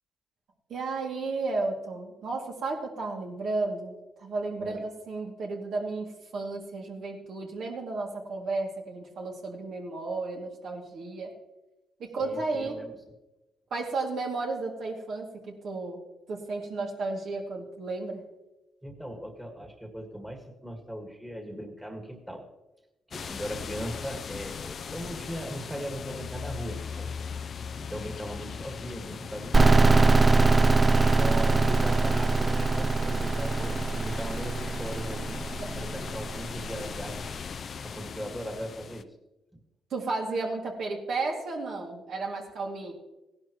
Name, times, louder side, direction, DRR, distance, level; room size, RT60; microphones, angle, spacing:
voice 1, 0.7-11.3 12.0-12.8 13.7-16.0 16.3-18.2 35.6-35.7 39.9-42.9, right 3 dB, 65° right, 0 dB, 2.5 m, -33 dB
voice 2, 12.2-13.0 18.8-22.5 23.1-27.1 27.4-27.5 27.8-29.8 30.9-35.4 35.7-37.3 37.8-39.2, equal, 5° right, 2 dB, 1.9 m, -39 dB
sound 1, 23.1-39.0, left 6 dB, 50° left, 0.5 m, -39 dB
sound 2, 29.5-37.1, right 3 dB, 25° right, 0.6 m, -23 dB
16.5 x 11.5 x 3.1 m, 0.98 s
cardioid pair, 90°, 0 cm